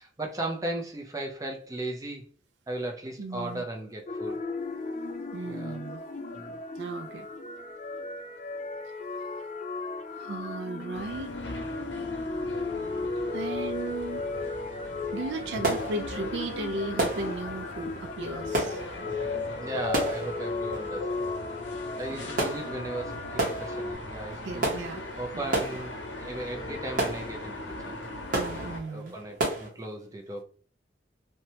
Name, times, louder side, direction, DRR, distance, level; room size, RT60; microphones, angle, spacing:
voice 1, 0.0-2.3 2.7-4.4 5.4-5.8 6.3-6.6 19.6-21.2 22.0-28.0 28.9-30.4, right 1 dB, 20° right, 0.5 m, -37 dB
voice 2, 3.2-3.6 5.3-6.0 6.8-7.3 10.1-11.3 13.3-14.2 15.1-18.8 22.1-22.2 24.4-25.0 25.3-25.6 28.3-29.2, right 2 dB, 70° right, 0.3 m, -36 dB
sound 1, 4.1-23.9, left 3 dB, 40° left, 0.4 m, -35 dB
sound 2, 10.9-28.8, left 1 dB, 80° left, 0.6 m, -40 dB
sound 3, 15.6-29.7, right 2 dB, 50° right, 0.8 m, -34 dB
3.0 x 2.1 x 2.8 m
head